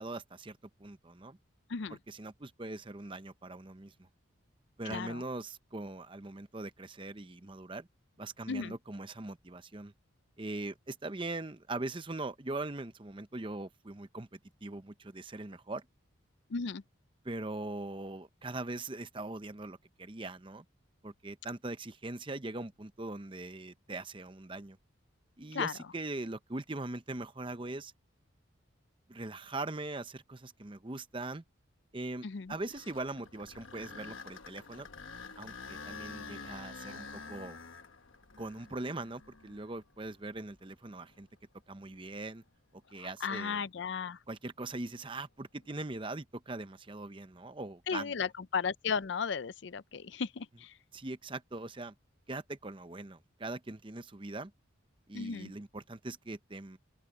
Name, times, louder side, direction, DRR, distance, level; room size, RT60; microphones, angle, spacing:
voice 1, 0.0-1.4 1.9-4.1 4.8-7.9 8.2-9.9 10.4-15.9 17.2-20.6 21.0-24.8 25.4-27.9 29.1-31.4 31.9-34.9 35.4-37.6 38.4-41.3 41.7-42.4 42.7-43.6 44.3-48.1 50.9-51.9 52.3-54.5 55.1-56.8, right 2 dB, 25° right, 0.7 m, -41 dB
voice 2, 4.8-5.2 8.5-8.7 16.5-16.8 25.5-25.7 32.2-32.5 43.0-44.2 47.9-50.7 55.1-55.5, left 5 dB, 60° left, 0.5 m, -35 dB
sound 1, 32.5-40.5 41.1-41.2 41.9-42.1 45.6-46.0, left 4 dB, 80° left, 1.2 m, -48 dB
open air
head